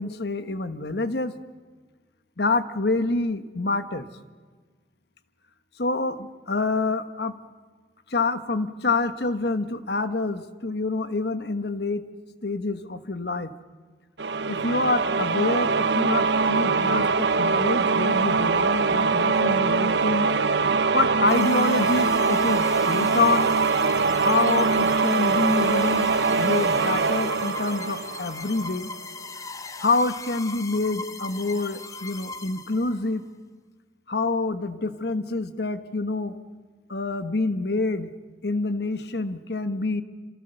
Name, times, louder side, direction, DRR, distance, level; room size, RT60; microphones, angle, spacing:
voice 1, 0.0-1.3 2.4-4.1 5.8-7.3 8.1-12.0 12.4-13.5 14.5-20.3 20.7-23.5 24.2-26.1 26.4-28.9 29.8-33.2 34.1-36.3 36.9-38.1 38.4-40.0, left 3 dB, 75° left, 10 dB, 1.3 m, -27 dB
sound 1, 14.2-28.8, right 4 dB, 85° right, 0.9 m, -23 dB
sound 2, 21.3-33.1, left 3 dB, 20° left, 0.8 m, -38 dB
28.0 x 27.0 x 6.9 m, 1.4 s
head